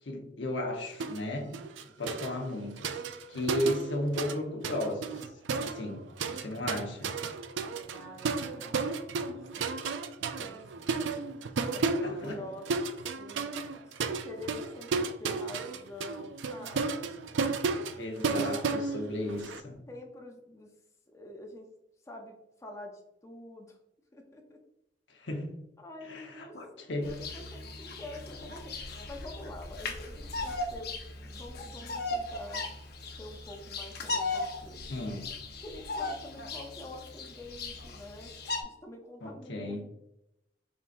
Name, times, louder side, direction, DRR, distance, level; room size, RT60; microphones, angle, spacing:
voice 1, 0.0-1.5 2.0-2.9 3.3-7.1 11.8-12.4 18.0-19.8 25.1-25.5 26.1-27.1 34.9-35.3 39.2-39.8, left 1 dB, 85° left, 0.9 m, -35 dB
sound 1, 1.0-1.2 1.5-4.4 4.6-19.6, right 4 dB, 85° right, 0.4 m, -33 dB
voice 2, 7.9-9.0 9.6-9.8 10.2-10.9 11.7-13.5 13.9-14.0 14.2-17.1 18.2-18.3 19.9-20.7 21.1-21.7 22.0-23.8 24.1-24.6 25.8-32.6 33.2-34.8 35.6-38.3 38.6-39.9, left 1 dB, 15° left, 0.5 m, -47 dB
Bird vocalization bird call bird song, 27.0-38.6, left 2 dB, 60° left, 0.7 m, -38 dB
4.1 x 3.7 x 2.5 m
head